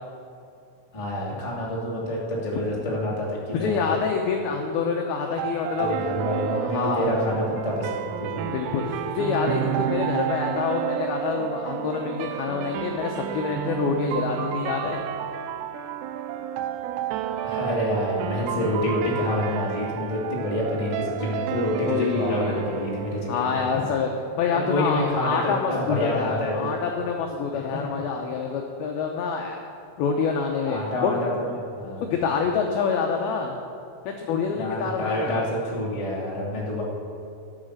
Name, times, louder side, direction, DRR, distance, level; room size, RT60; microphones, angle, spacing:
voice 1, 0.9-3.8 5.8-7.9 8.2-8.5 17.4-23.8 24.5-26.7 27.5-27.6 30.6-32.0 34.5-36.8, left 1 dB, 50° left, -5 dB, 0.4 m, -27 dB
voice 2, 3.5-5.9 6.4-7.1 8.5-15.0 21.8-22.6 23.3-24.1 24.4-29.7 30.0-31.3 32.0-33.5 34.1-35.4, left 6 dB, 90° left, 2 dB, 2.1 m, -27 dB
sound 1, 5.4-24.3, right 9 dB, 85° right, 2.5 m, -31 dB
13.0 x 8.2 x 6.5 m, 2.7 s
omnidirectional pair, 5.5 m